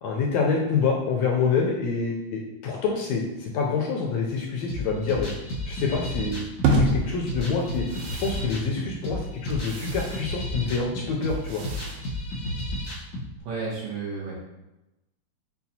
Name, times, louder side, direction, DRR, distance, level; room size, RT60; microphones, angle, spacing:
voice 1, 0.0-5.3 5.7-6.4 6.7-7.8 8.2-11.6, left 5 dB, 80° left, -1 dB, 1.6 m, -26 dB
sound 1, 4.7-13.3, left 1 dB, 65° left, 1.2 m, -32 dB
sound 2, 6.6-12.9, right 2 dB, 85° right, 1.9 m, -30 dB
voice 2, 13.4-14.5, right 4 dB, 70° right, -5 dB, 1.8 m, -32 dB
6.7 x 2.3 x 2.8 m, 0.96 s
omnidirectional pair, 3.3 m